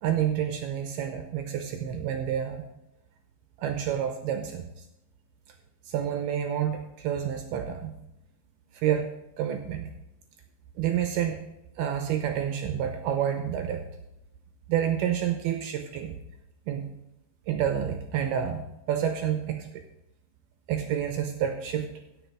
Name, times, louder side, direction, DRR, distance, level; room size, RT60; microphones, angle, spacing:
voice 1, 0.0-2.6 3.6-4.9 5.8-7.9 8.7-9.1 9.4-9.9 10.8-11.4 11.8-13.8 14.7-16.2 16.7-16.9 17.5-19.8 20.7-21.9, right 9 dB, 75° right, 6 dB, 2.5 m, -29 dB
15.5 x 6.9 x 5.0 m, 0.86 s
omnidirectional pair, 5.2 m